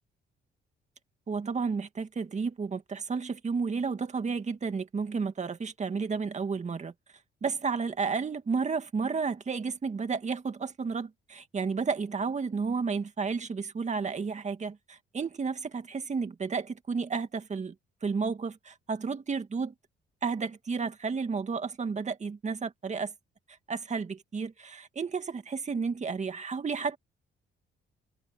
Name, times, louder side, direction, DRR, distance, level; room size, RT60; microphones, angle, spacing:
voice 1, 1.3-6.9 7.4-17.7 18.0-19.7 20.2-23.1 23.7-27.0, right 5 dB, 35° right, 2.1 m, -32 dB
cardioid pair, 90°, 20 cm